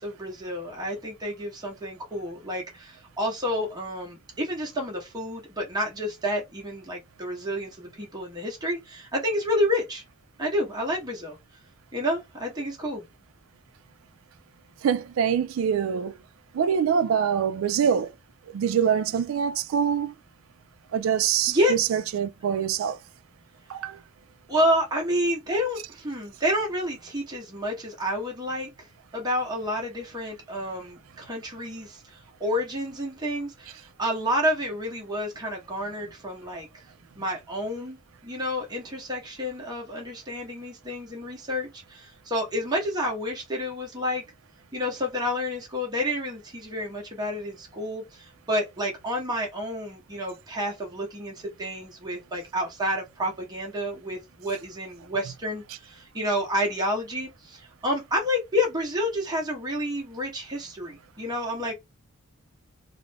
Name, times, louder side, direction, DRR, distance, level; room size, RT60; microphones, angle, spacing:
voice 1, 0.0-10.0 10.4-11.4 11.9-13.0 21.5-21.8 24.5-28.9 29.1-36.9 37.2-38.0 38.2-44.2 44.7-61.7, equal, 20° right, 0.8 m, -29 dB
voice 2, 14.8-16.1 16.5-18.1 18.5-20.1 20.9-21.6 21.9-23.0 23.7-24.0, right 7 dB, 75° right, 0.3 m, -24 dB
2.4 x 2.0 x 3.2 m
head